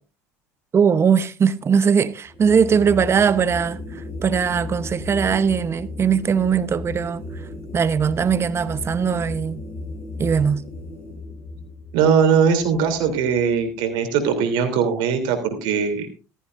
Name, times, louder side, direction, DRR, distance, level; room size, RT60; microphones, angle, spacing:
voice 1, 0.7-7.5 7.7-9.6 10.2-10.6, right 7 dB, 35° right, 0.9 m, -20 dB
sound 1, 2.3-13.6, left 2 dB, 35° left, 7.0 m, -35 dB
voice 2, 11.9-16.1, right 6 dB, 70° right, 3.1 m, -20 dB
15.0 x 14.0 x 2.6 m
hypercardioid pair, 80°, 8 cm